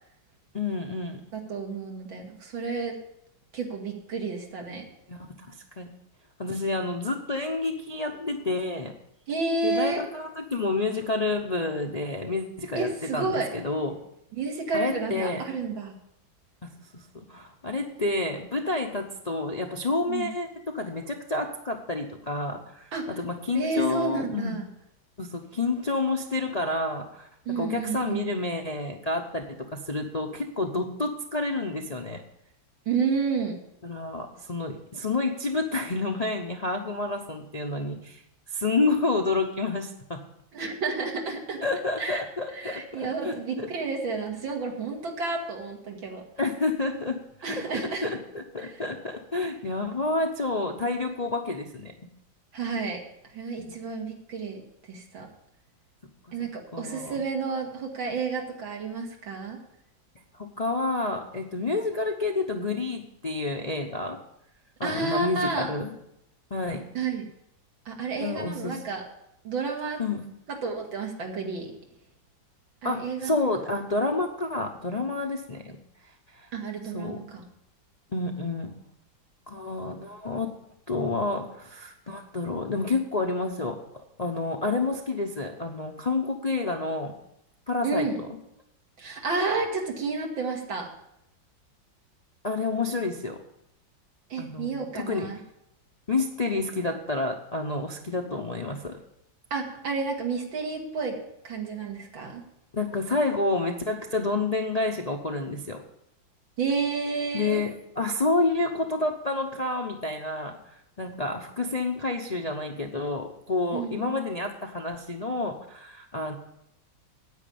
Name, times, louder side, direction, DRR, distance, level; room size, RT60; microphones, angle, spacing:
voice 1, 0.5-1.2 5.1-5.9 6.4-8.9 9.6-14.0 14.7-15.4 16.9-24.6 25.2-32.2 33.8-38.2 38.5-40.2 41.6-43.7 46.4-47.6 48.0-51.9 56.4-57.2 60.4-64.2 64.8-65.9 66.5-66.8 68.2-68.8 70.0-70.2 72.8-75.8 76.4-76.5 76.9-77.2 78.1-78.7 79.5-80.5 80.9-83.8 84.2-87.1 87.7-88.1 92.4-93.4 94.4-95.3 96.1-99.0 102.7-105.8 107.3-107.7 108.0-110.6 111.0-116.3, left 3 dB, 40° left, 2 dB, 0.5 m, -29 dB
voice 2, 1.3-2.9 3.5-4.8 9.3-10.0 12.8-13.5 14.3-16.0 20.1-20.3 22.9-23.0 23.5-24.7 27.5-28.3 32.9-33.6 40.5-41.6 42.0-42.2 42.5-46.2 47.4-48.1 48.6-48.7 52.5-53.0 53.3-54.6 54.9-55.3 56.3-59.6 64.8-65.7 66.9-67.3 67.9-69.0 69.4-70.0 70.5-71.7 72.8-73.3 76.5-77.4 87.8-88.2 89.0-90.9 94.3-95.4 99.5-101.2 101.4-102.4 106.6-107.6 113.7-114.2, right 4 dB, 85° right, 1 dB, 2.7 m, -30 dB
9.7 x 8.7 x 6.9 m, 0.80 s
omnidirectional pair, 2.1 m